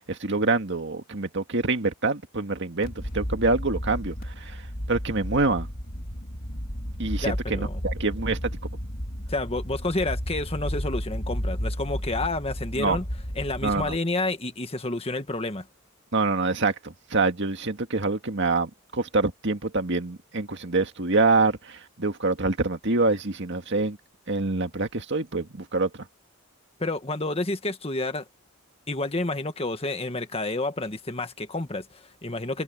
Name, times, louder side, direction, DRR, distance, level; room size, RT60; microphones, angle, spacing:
voice 1, 0.1-4.6 4.9-5.7 7.0-8.5 12.8-13.0 13.6-14.0 16.1-24.0 24.3-25.9, right 3 dB, 55° right, 2.0 m, -26 dB
sound 1, 2.8-14.0, equal, 45° left, 3.4 m, -33 dB
voice 2, 7.2-7.8 9.3-13.1 13.3-15.7 26.8-28.2 28.9-32.6, left 2 dB, 25° left, 1.6 m, -29 dB
head